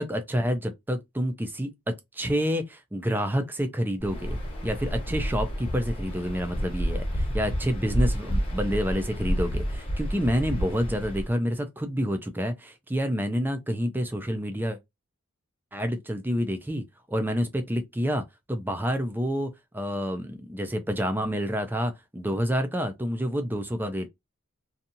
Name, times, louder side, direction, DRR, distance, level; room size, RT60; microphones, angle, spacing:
voice 1, 0.0-4.4 4.6-14.8 15.7-18.2 18.5-24.1, equal, 10° right, 0.4 m, -28 dB
Waves surf, 4.0-11.3, equal, 25° left, 0.9 m, -30 dB
2.7 x 2.4 x 2.7 m
head